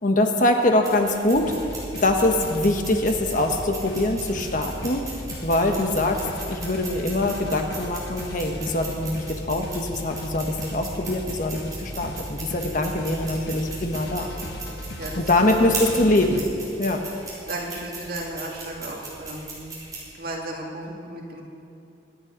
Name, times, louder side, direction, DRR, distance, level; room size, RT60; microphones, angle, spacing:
voice 1, 0.0-1.5 2.0-5.1 5.4-14.3 15.2-16.4 16.8-17.0, left 1 dB, 45° left, 4 dB, 1.3 m, -23 dB
sound 1, 0.8-20.0, right 3 dB, 20° right, 4.8 m, -39 dB
sound 2, 1.3-16.4, equal, 60° left, 1.5 m, -37 dB
voice 2, 17.5-19.6 20.1-21.4, right 1 dB, 55° right, -2 dB, 2.5 m, -34 dB
24.0 x 9.6 x 5.3 m, 2.5 s
head